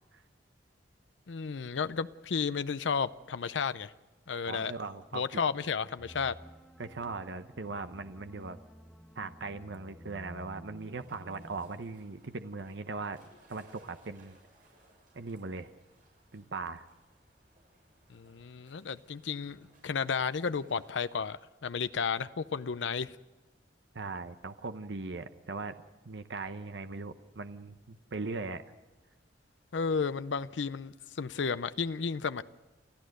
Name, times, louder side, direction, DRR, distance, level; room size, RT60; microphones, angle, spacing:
voice 1, 1.3-3.9 4.3-4.7 5.1-6.3 18.1-23.2 29.7-32.4, left 5 dB, 90° left, 0.6 m, -33 dB
voice 2, 4.5-5.2 6.8-8.6 9.2-13.2 13.5-14.4 15.1-15.7 16.3-16.8 23.9-25.7 26.1-28.6, right 3 dB, 80° right, 0.9 m, -39 dB
sound 1, 6.0-11.7, equal, 5° left, 1.0 m, -52 dB
sound 2, 10.8-21.0, right 2 dB, 50° right, 7.7 m, -65 dB
29.5 x 14.0 x 6.5 m
head